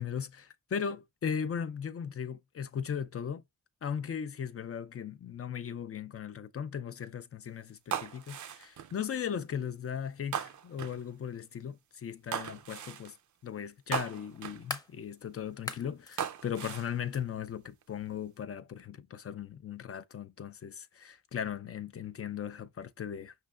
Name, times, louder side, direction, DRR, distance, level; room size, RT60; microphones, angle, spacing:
voice 1, 0.0-3.4 3.8-13.2 13.4-23.3, left 8 dB, 40° left, 0.4 m, -37 dB
sound 1, 7.9-9.0 10.3-11.0 12.3-13.1 13.9-14.7 16.2-17.0 17.7-18.1, right 9 dB, 55° right, 0.5 m, -38 dB
sound 2, 12.0-12.1 13.9-15.0 15.5-16.2 17.1-17.2, left 2 dB, 10° left, 0.7 m, -41 dB
5.4 x 3.2 x 2.4 m
cardioid pair, 85°, 35 cm